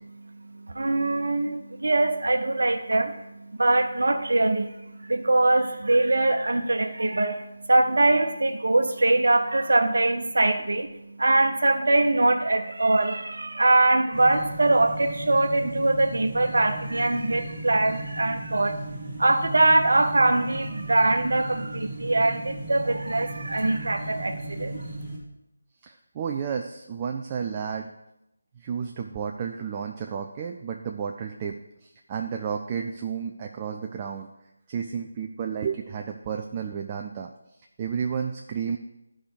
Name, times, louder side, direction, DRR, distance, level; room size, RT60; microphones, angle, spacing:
voice 1, 0.2-24.9, right 2 dB, 60° right, 6 dB, 1.1 m, -23 dB
sound 1, 14.1-25.2, right 2 dB, 5° right, 1.7 m, -37 dB
voice 2, 25.8-27.9 28.6-34.3 34.7-37.3 37.8-38.8, right 7 dB, 20° right, 3 dB, 0.4 m, -32 dB
12.0 x 5.0 x 4.9 m, 0.89 s
figure-of-eight pair, 160°, 0 cm